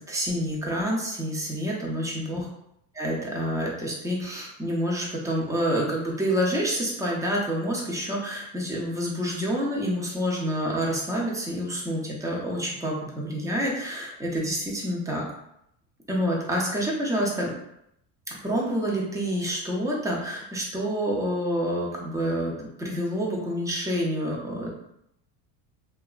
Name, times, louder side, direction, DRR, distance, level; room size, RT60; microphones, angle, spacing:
voice 1, 0.0-2.4 2.9-15.2 16.1-17.5 18.4-22.5 22.8-24.7, equal, 5° right, -2 dB, 0.4 m, -28 dB
2.8 x 2.3 x 2.3 m, 0.77 s
supercardioid pair, 115°, 49 cm